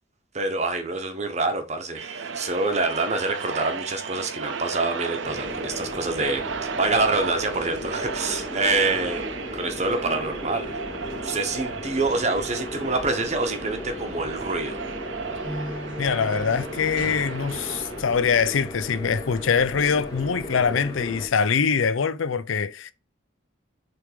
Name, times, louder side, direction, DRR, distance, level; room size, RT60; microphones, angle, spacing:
voice 1, 0.3-9.2 9.5-10.8 11.2-14.8, right 3 dB, 35° right, 1.0 m, -26 dB
sound 1, 1.9-18.0, right 5 dB, 70° right, 0.6 m, -34 dB
sound 2, 5.2-21.3, left 1 dB, 20° left, 1.7 m, -36 dB
sound 3, 15.4-21.7, left 1 dB, 50° left, 2.5 m, -43 dB
voice 2, 16.0-22.9, left 6 dB, 80° left, 0.5 m, -23 dB
6.6 x 3.5 x 5.0 m
head